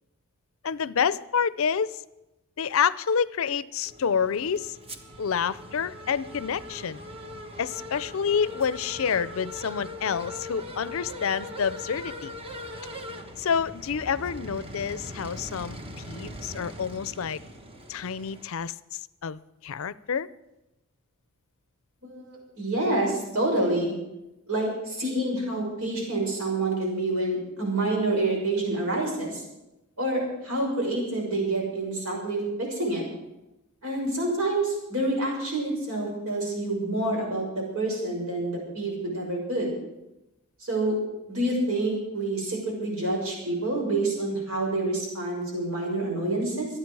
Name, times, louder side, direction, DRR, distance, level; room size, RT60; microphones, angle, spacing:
voice 1, 0.6-2.0 2.6-4.8 5.2-7.0 7.6-12.3 13.4-15.8 16.1-17.4 17.9-18.7 19.2-20.3, left 7 dB, 65° left, 18 dB, 0.5 m, -28 dB
sound 1, 3.9-18.4, left 1 dB, 25° right, 1.1 m, -41 dB
voice 2, 22.0-23.9 24.5-29.4 30.0-33.0 33.8-39.7 40.6-41.0 41.3-46.7, right 2 dB, 80° right, -1 dB, 6.0 m, -27 dB
25.5 x 9.1 x 4.7 m, 0.95 s
head